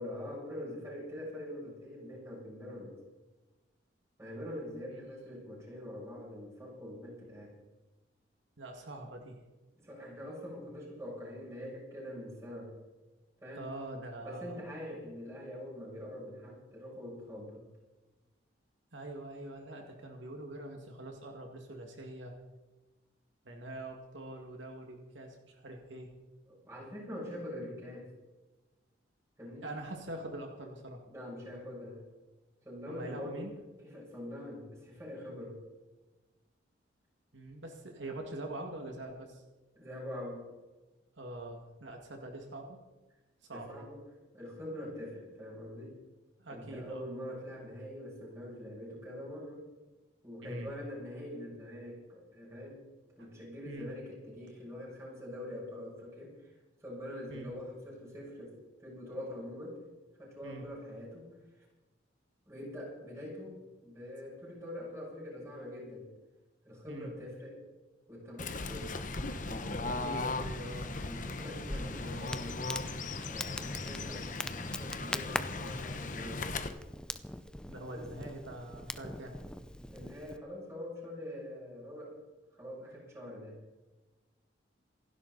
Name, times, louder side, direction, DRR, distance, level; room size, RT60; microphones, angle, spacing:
voice 1, 0.0-3.0 4.2-7.5 9.8-12.8 13.4-13.7 14.2-17.7 26.5-28.1 29.4-29.7 31.1-32.0 32.6-33.5 33.8-35.6 39.8-40.5 43.5-44.0 44.3-46.0 46.5-49.7 50.2-52.8 53.2-56.5 56.8-59.8 60.2-61.3 61.5-61.6 62.5-66.1 66.6-67.6 68.1-69.0 69.4-70.0 70.8-72.6 73.3-74.3 74.6-76.5 77.9-78.1 79.7-82.2 82.5-83.6, left 1 dB, 15° right, -5 dB, 7.4 m, -44 dB
voice 2, 8.6-9.4 13.6-14.6 18.9-22.3 23.5-26.1 29.6-31.0 32.9-33.5 37.3-39.4 41.2-42.8 43.4-43.9 46.4-47.0 50.4-50.7 53.2-53.3 53.7-53.9 57.3-57.5 60.4-60.6 66.9-67.1 70.0-70.9 77.7-79.4, right 1 dB, 80° right, 2 dB, 2.2 m, -44 dB
Fowl / Bird, 68.4-76.7, left 3 dB, 45° left, 1.1 m, -38 dB
Crackle, 71.7-80.4, left 1 dB, 5° left, 0.6 m, -42 dB
27.5 x 11.5 x 4.2 m, 1.2 s
head